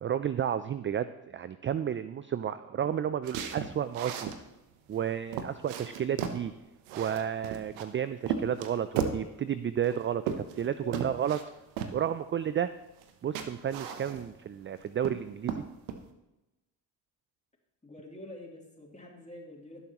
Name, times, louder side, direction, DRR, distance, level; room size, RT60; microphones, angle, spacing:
voice 1, 0.0-4.3 4.9-6.5 7.0-11.4 11.9-12.7 13.2-15.6, right 9 dB, 25° right, 13 dB, 0.4 m, -32 dB
sound 1, 3.2-4.4 4.9-5.0 5.3-6.4 6.8-7.9 8.3-9.2 9.8-10.7 10.9-11.4 11.8-12.0 13.0-13.1 13.3-14.4 14.8-15.2 15.5-16.0, right 7 dB, 85° right, 1.0 m, -35 dB
voice 2, 17.8-19.9, left 1 dB, 15° left, -2 dB, 3.2 m, -46 dB
16.5 x 7.1 x 3.0 m, 0.98 s
hypercardioid pair, 55°, 49 cm